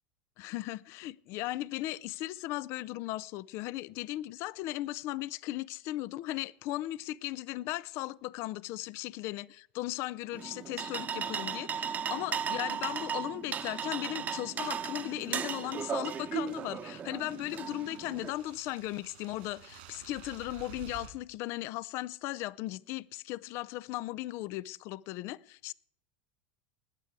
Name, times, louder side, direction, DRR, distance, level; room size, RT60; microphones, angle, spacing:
voice 1, 0.4-25.7, left 16 dB, 55° left, 0.4 m, -37 dB
sound 1, 10.3-18.3, right 7 dB, 30° right, 0.9 m, -36 dB
sound 2, 14.0-21.1, right 10 dB, 80° right, 3.3 m, -54 dB
19.5 x 8.4 x 4.7 m
supercardioid pair, 105°, 5 cm